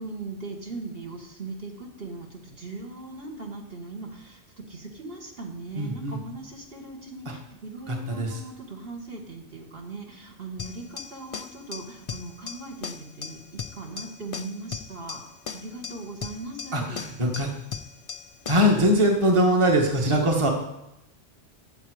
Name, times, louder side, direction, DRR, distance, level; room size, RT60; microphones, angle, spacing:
voice 1, 0.0-15.2 15.5-17.0, right 3 dB, 50° right, 0 dB, 2.0 m, -39 dB
voice 2, 5.8-6.2 7.2-7.3 7.9-8.4 16.7-17.5 18.5-20.5, equal, 25° right, 1 dB, 1.6 m, -22 dB
sound 1, 10.6-18.8, left 6 dB, 45° left, 0.5 m, -38 dB
14.5 x 8.7 x 5.0 m, 0.88 s
omnidirectional pair, 1.3 m